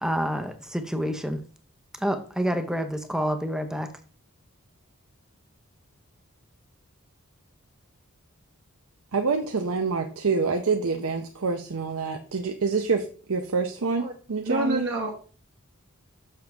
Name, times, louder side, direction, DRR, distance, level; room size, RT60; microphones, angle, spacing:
voice 1, 0.0-1.4 2.0-3.9, equal, 5° right, 7 dB, 0.6 m, -28 dB
voice 2, 9.1-13.0 13.3-14.8, right 4 dB, 75° right, 4 dB, 0.7 m, -26 dB
voice 3, 14.0-15.2, right 2 dB, 55° right, -3 dB, 1.1 m, -28 dB
6.7 x 6.7 x 3.5 m, 0.41 s
head